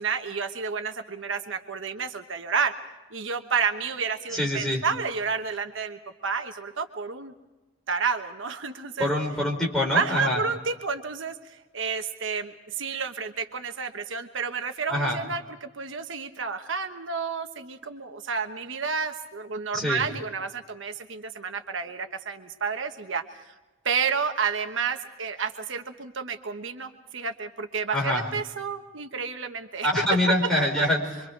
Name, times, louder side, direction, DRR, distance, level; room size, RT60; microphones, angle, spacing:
voice 1, 0.0-2.7 3.1-7.3 7.9-9.1 9.9-23.5 23.8-29.9, right 5 dB, 70° right, 6 dB, 1.1 m, -30 dB
voice 2, 4.3-4.8 9.0-10.4 14.9-15.2 19.7-20.0 27.9-28.2 29.8-31.0, left 1 dB, ahead, -3 dB, 4.8 m, -24 dB
25.0 x 25.0 x 4.6 m, 1.1 s
head